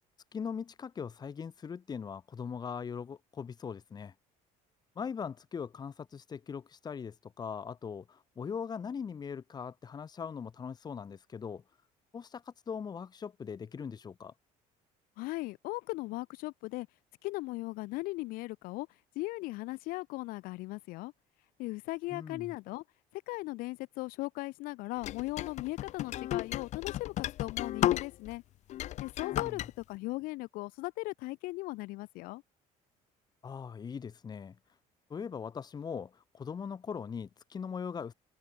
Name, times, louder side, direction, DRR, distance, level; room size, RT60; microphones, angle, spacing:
voice 1, 0.3-4.1 5.0-11.6 12.1-14.3 22.1-22.5 29.3-29.7 33.4-34.6 35.1-38.1, left 6 dB, 30° left, 2.3 m, -40 dB
voice 2, 15.2-16.9 17.2-18.9 19.1-21.1 21.6-22.8 23.1-28.4 29.0-32.4, left 21 dB, 80° left, 2.9 m, -38 dB
sound 1, 25.0-28.4 28.7-29.7, left 13 dB, 55° left, 1.0 m, -33 dB
cardioid pair, 135°, 15 cm